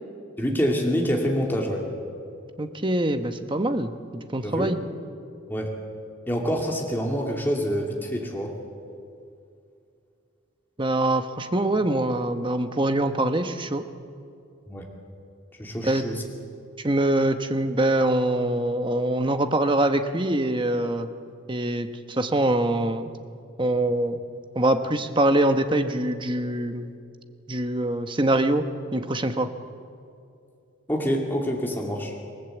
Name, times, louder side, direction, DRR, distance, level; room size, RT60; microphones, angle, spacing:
voice 1, 0.4-1.9 4.4-4.7 5.5-5.7 6.3-8.5 14.7-14.9 15.6-16.2 30.9-32.1, equal, 10° left, -1 dB, 2.5 m, -26 dB
voice 2, 2.6-4.8 10.8-13.8 15.8-16.0 16.8-21.1 21.5-23.1 23.6-24.2 24.5-26.9 27.5-28.6 28.9-29.5, right 1 dB, 25° right, 8 dB, 1.0 m, -24 dB
27.5 x 19.0 x 8.0 m, 2.5 s
head